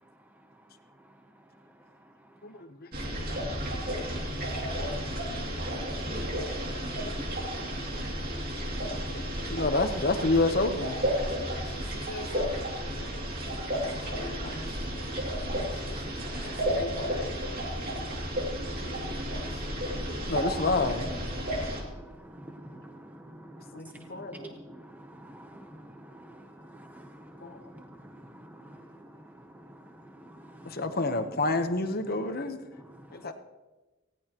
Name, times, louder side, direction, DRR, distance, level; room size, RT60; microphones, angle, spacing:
voice 1, 2.4-3.4 8.8-11.0 11.6-13.8 14.1-14.7 14.9-15.1 15.6-15.9 16.6-17.4 17.7-18.1 18.8-19.4 20.3-21.1 23.7-24.6 27.4-27.6 30.6-32.6 33.1-33.3, left 2 dB, 50° left, 8 dB, 1.0 m, -31 dB
sound 1, 2.9-21.8, equal, 45° right, 2.6 m, -32 dB
voice 2, 5.5-7.7 16.3-16.7, equal, 65° right, -2 dB, 5.6 m, -50 dB
voice 3, 13.6-16.4 17.0-17.2 17.4-17.6 17.9-20.3 21.4-30.8 32.7-33.3, right 1 dB, 10° right, 4 dB, 0.7 m, -49 dB
19.0 x 17.0 x 3.0 m, 1.2 s
head